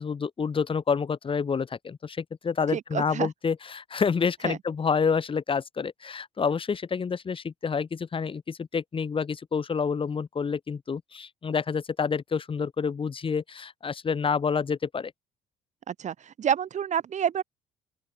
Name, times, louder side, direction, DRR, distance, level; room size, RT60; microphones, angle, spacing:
voice 1, 0.0-15.1, left 5 dB, 30° left, 2.9 m, -28 dB
voice 2, 2.7-3.3 4.4-4.6 15.9-17.4, right 9 dB, 45° right, 1.2 m, -28 dB
open air
cardioid pair, 110°, 17 cm